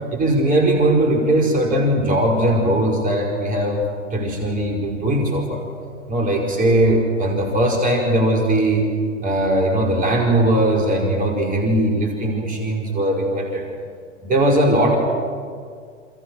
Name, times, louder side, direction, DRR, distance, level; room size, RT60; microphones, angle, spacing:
voice 1, 0.1-3.8 4.1-5.6 6.1-8.8 9.2-13.6 14.2-15.0, right 1 dB, 20° right, 1 dB, 5.1 m, -19 dB
28.5 x 28.0 x 6.4 m, 2.1 s
hypercardioid pair, 105°, 38 cm